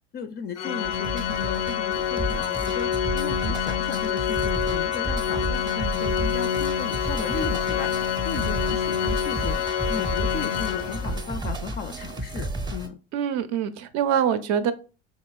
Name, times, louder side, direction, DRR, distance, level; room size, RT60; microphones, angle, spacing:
voice 1, 0.1-7.9 8.2-13.0, left 5 dB, 30° left, 9 dB, 0.4 m, -35 dB
Organ, 0.6-11.4, left 9 dB, 90° left, 0.5 m, -27 dB
sound 1, 0.8-12.9, right 1 dB, 15° right, 0.6 m, -32 dB
voice 2, 13.1-14.7, right 8 dB, 55° right, 11 dB, 0.5 m, -24 dB
4.1 x 2.9 x 2.3 m, 0.34 s
hypercardioid pair, 85°, 34 cm